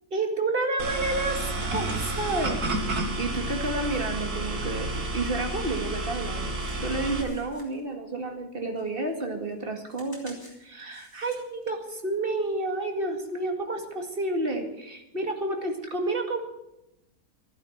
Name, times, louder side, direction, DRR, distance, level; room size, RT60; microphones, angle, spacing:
voice 1, 0.1-2.6 3.2-16.4, right 2 dB, 35° right, 4 dB, 2.3 m, -30 dB
sound 1, 0.8-7.2, right 2 dB, 80° right, 2.4 m, -30 dB
sound 2, 6.6-8.5 8.8-11.6 12.1-12.2, left 1 dB, 15° left, 3.7 m, -53 dB
13.5 x 11.5 x 7.8 m, 0.89 s
omnidirectional pair, 1.6 m